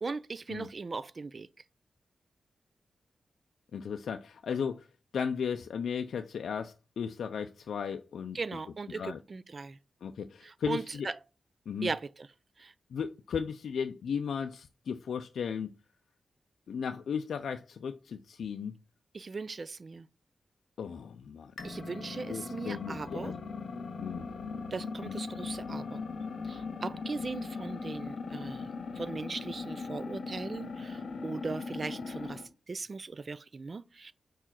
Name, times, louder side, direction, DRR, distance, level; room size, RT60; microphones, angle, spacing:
voice 1, 0.0-1.5 8.3-9.8 10.4-11.2 11.8-12.3 12.6-12.7 19.1-20.1 21.6-23.3 24.7-26.0 26.4-28.7 29.0-32.4 32.7-34.1, right 4 dB, 40° right, 0.4 m, -38 dB
voice 2, 3.7-4.9 5.1-8.4 8.9-9.2 10.0-11.1 11.7-11.9 12.9-15.7 16.7-18.8 20.8-21.5 22.3-23.4 24.0-24.3 25.0-25.2, left 7 dB, 90° left, 0.4 m, -35 dB
sound 1, 21.6-32.5, left 4 dB, 65° left, 1.8 m, -39 dB
4.9 x 4.6 x 5.8 m
wide cardioid pair, 120°, 0 cm